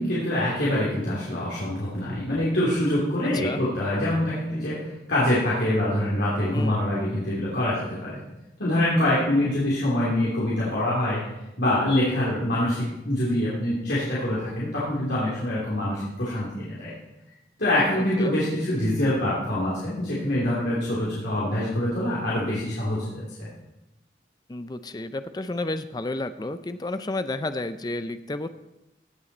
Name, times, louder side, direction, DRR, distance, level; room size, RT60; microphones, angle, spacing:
voice 1, 0.0-8.2 8.6-11.2 11.6-16.9 17.6-23.2, left 1 dB, 70° left, -8 dB, 3.2 m, -25 dB
voice 2, 17.9-18.3 24.5-28.5, left 2 dB, 20° left, 11 dB, 0.4 m, -31 dB
16.5 x 7.5 x 4.3 m, 0.94 s
head